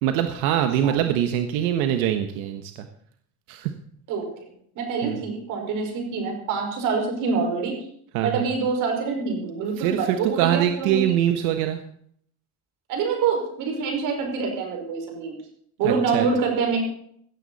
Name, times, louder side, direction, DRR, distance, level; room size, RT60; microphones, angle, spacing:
voice 1, 0.0-2.9 3.5-3.7 5.0-5.2 8.1-8.5 9.8-11.8 15.8-16.3, right 11 dB, 85° right, 6 dB, 1.3 m, -23 dB
voice 2, 4.8-7.7 8.2-11.2 12.9-15.4 15.8-16.8, right 5 dB, 45° right, 2 dB, 5.3 m, -26 dB
16.5 x 14.0 x 4.2 m, 0.65 s
cardioid pair, 170°, 42 cm